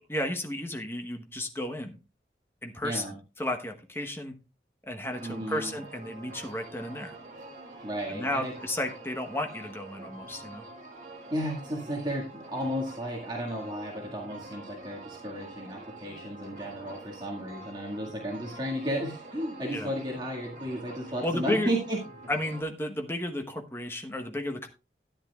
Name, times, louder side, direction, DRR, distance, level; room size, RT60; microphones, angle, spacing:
voice 1, 0.1-2.0 2.6-3.0 3.4-4.4 4.9-7.1 8.1-10.6 19.7-19.9 21.2-21.7 22.3-24.7, left 1 dB, 15° left, 5 dB, 1.1 m, -33 dB
voice 2, 2.8-3.1 5.2-5.7 7.8-8.5 11.3-22.0, equal, 25° right, -2 dB, 1.9 m, -33 dB
sound 1, 5.1-22.6, right 2 dB, 45° right, 2.1 m, -46 dB
13.5 x 10.0 x 2.3 m, 0.31 s
head